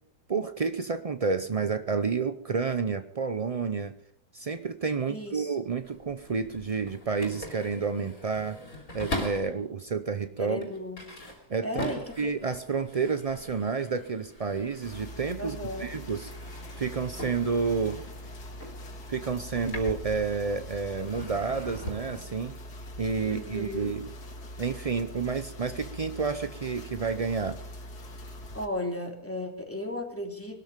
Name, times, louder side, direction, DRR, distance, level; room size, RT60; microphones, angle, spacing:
voice 1, 0.3-4.0 4.3-8.6 8.9-10.7 11.5-16.3 16.8-18.0 19.1-22.6 23.0-24.1 24.6-27.6, right 5 dB, 70° right, 10 dB, 0.3 m, -30 dB
voice 2, 5.1-5.5 10.4-11.0 11.6-12.1 15.4-15.9 23.2-23.9 28.5-30.6, left 1 dB, 10° left, 2 dB, 2.9 m, -35 dB
sound 1, 5.7-9.6 10.2-15.5 15.7-20.6 20.9-22.2, left 1 dB, 50° left, 3.5 m, -41 dB
sound 2, 14.8-28.7, left 1 dB, 70° left, 2.6 m, -43 dB
20.5 x 13.0 x 5.2 m, 0.63 s
omnidirectional pair, 1.7 m